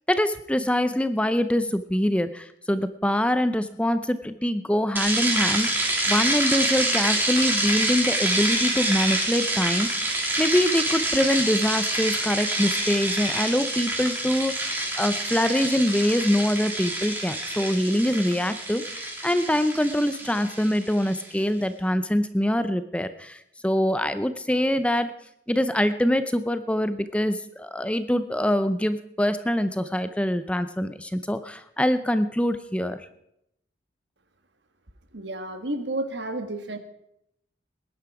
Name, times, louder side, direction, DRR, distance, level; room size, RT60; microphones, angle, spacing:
voice 1, 0.1-9.9 10.4-25.1 25.5-33.0, equal, 5° left, 11 dB, 0.5 m, -24 dB
sound 1, 5.0-21.2, right 1 dB, 10° right, 3.0 m, -27 dB
voice 2, 35.1-36.8, right 1 dB, 75° right, 8 dB, 1.6 m, -31 dB
20.0 x 10.5 x 4.9 m, 0.78 s
head